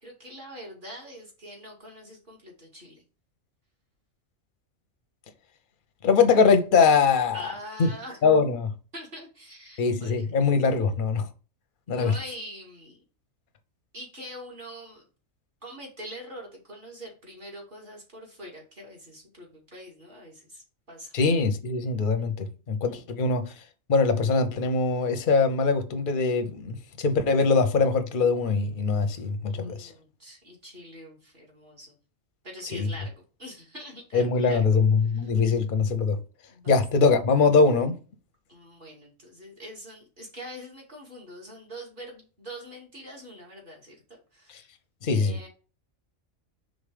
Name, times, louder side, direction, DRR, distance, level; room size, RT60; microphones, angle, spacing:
voice 1, 0.0-3.0 7.3-8.2 8.9-10.2 11.9-13.0 13.9-15.0 15.6-21.1 22.9-23.1 29.5-32.0 32.4-33.1 33.4-34.8 35.1-35.3 36.5-36.8 38.5-44.7 45.1-45.5, equal, 40° right, 2.6 m, -44 dB
voice 2, 6.0-7.4 7.8-7.9 8.2-8.7 9.8-11.2 11.9-12.1 21.1-23.5 23.9-29.9 32.7-32.9 34.1-36.2 36.7-38.0 45.0-45.4, left 4 dB, 45° left, 0.8 m, -22 dB
5.1 x 4.0 x 5.0 m
omnidirectional pair, 1.4 m